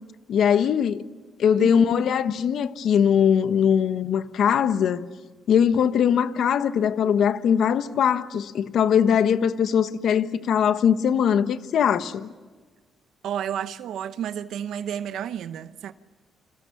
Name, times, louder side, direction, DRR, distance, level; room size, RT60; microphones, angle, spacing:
voice 1, 0.3-1.0 1.4-5.1 5.5-12.3, left 8 dB, 70° left, 1.3 m, -21 dB
voice 2, 1.6-2.1 13.2-15.9, right 9 dB, 75° right, 0.9 m, -31 dB
30.0 x 26.0 x 6.9 m
cardioid pair, 90°, 0 cm